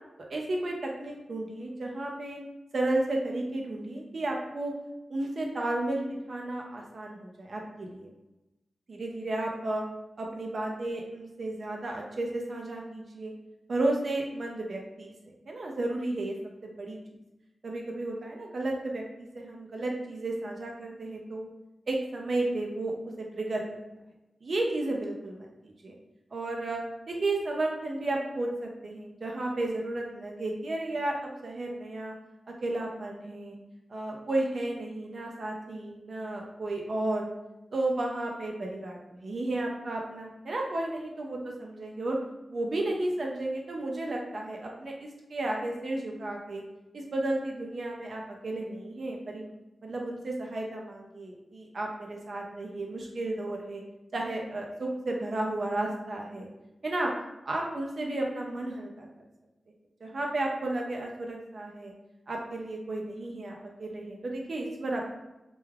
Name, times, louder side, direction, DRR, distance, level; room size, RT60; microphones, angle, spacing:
voice 1, 0.3-2.4 2.7-4.7 5.1-8.1 8.9-9.8 10.2-13.3 13.7-15.1 15.5-16.4 16.6-17.0 17.6-21.5 21.9-23.6 24.4-26.0 26.3-26.8 27.1-32.1 32.6-33.6 33.9-37.3 37.7-42.2 42.5-46.6 46.9-49.5 49.8-53.8 54.1-56.5 56.8-57.1 57.5-59.1 60.0-61.9 62.3-65.1, right 2 dB, 50° right, 0 dB, 0.3 m, -33 dB
2.3 x 2.2 x 3.1 m, 0.99 s
wide cardioid pair, 160°, 0 cm